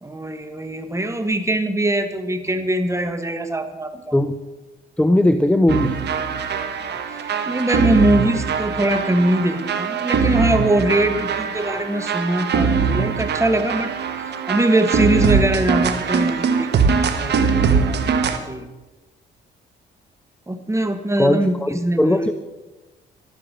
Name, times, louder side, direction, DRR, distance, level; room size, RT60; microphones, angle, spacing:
voice 1, 0.0-4.1 7.3-13.9 14.5-18.0 18.5-18.7 20.5-22.3, right 1 dB, 15° right, 8 dB, 1.6 m, -22 dB
voice 2, 5.0-6.0 21.2-22.3, left 1 dB, 5° left, 10 dB, 0.7 m, -18 dB
sound 1, 5.7-18.4, right 5 dB, 60° right, 1.5 m, -22 dB
12.5 x 11.5 x 6.9 m, 1.1 s
cardioid pair, 90°, 20 cm